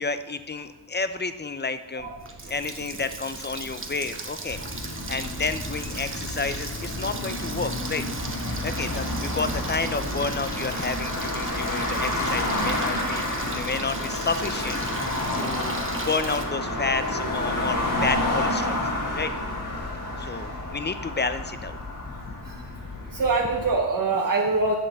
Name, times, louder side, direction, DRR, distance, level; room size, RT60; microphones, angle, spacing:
voice 1, 0.0-2.1 2.4-8.0 8.6-15.1 15.3-15.8 16.0-18.8 19.1-19.3 20.2-21.8 22.1-22.2, left 4 dB, 25° left, 11 dB, 0.6 m, -30 dB
Water tap faucet, 2.0-16.4, right 3 dB, 30° right, 1.2 m, -37 dB
sound 1, 4.5-23.7, left 1 dB, 45° left, 3.5 m, -30 dB
voice 2, 23.1-24.7, right 3 dB, 50° right, 0 dB, 1.2 m, -24 dB
7.7 x 7.5 x 6.8 m, 1.1 s
cardioid pair, 85°, 41 cm